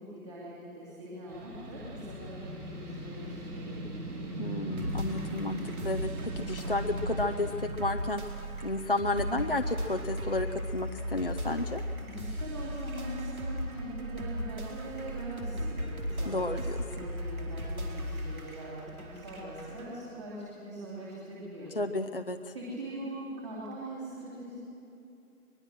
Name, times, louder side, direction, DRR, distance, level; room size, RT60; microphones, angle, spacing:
voice 1, 0.0-3.8 12.0-21.7 22.5-24.6, right 1 dB, 20° right, -7 dB, 2.8 m, -42 dB
sound 1, 1.3-7.6, right 1 dB, 85° right, 4.4 m, -39 dB
voice 2, 4.4-8.2 8.6-11.8 16.3-16.8 21.8-22.5, left 2 dB, 40° left, 5 dB, 0.6 m, -32 dB
sound 2, 4.7-19.8, equal, 65° right, 4.7 m, -37 dB
22.5 x 21.5 x 6.3 m, 2.8 s
figure-of-eight pair, 170°, 46 cm